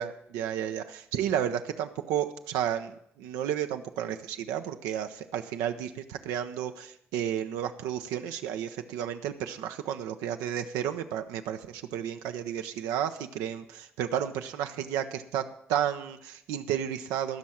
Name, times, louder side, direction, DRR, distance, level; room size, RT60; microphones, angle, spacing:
voice 1, 0.0-2.9 3.2-17.4, right 10 dB, 70° right, 7 dB, 0.6 m, -32 dB
14.5 x 6.3 x 7.2 m, 0.73 s
hypercardioid pair, 40°, 6 cm